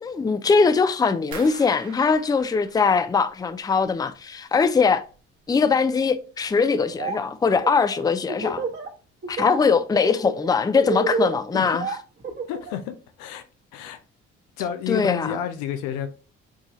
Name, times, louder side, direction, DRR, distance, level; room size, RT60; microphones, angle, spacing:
voice 1, 0.0-5.0 5.5-8.7 9.3-11.9 14.9-15.4, left 5 dB, 15° left, 0.4 m, -21 dB
sound 1, 1.3-4.2 4.5-5.2 5.5-5.9 6.4-6.5, right 5 dB, 75° right, 1.2 m, -45 dB
Laughter, 6.7-7.2 7.5-8.9 9.2-9.6 9.9-12.8, right 4 dB, 35° right, 1.2 m, -29 dB
voice 2, 12.5-13.4 13.7-14.0 14.6-16.1, left 10 dB, 85° left, 0.6 m, -30 dB
4.8 x 2.7 x 3.0 m
supercardioid pair, 55°, 29 cm